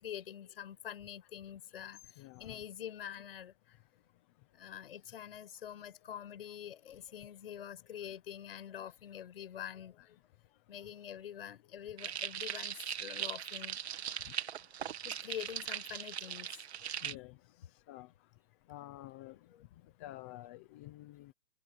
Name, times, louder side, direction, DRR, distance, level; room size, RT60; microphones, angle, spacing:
voice 1, 0.0-2.0 2.4-3.5 4.5-10.2 10.7-13.8 15.0-16.5 19.5-19.6, left 10 dB, 50° left, 6.7 m, -46 dB
voice 2, 2.2-2.5 17.0-17.3 17.9-18.1 18.7-19.4 20.0-21.3, left 16 dB, 10° left, 0.6 m, -49 dB
sound 1, 12.0-17.1, right 9 dB, 60° right, 2.2 m, -40 dB
hypercardioid pair, 165°, 37 cm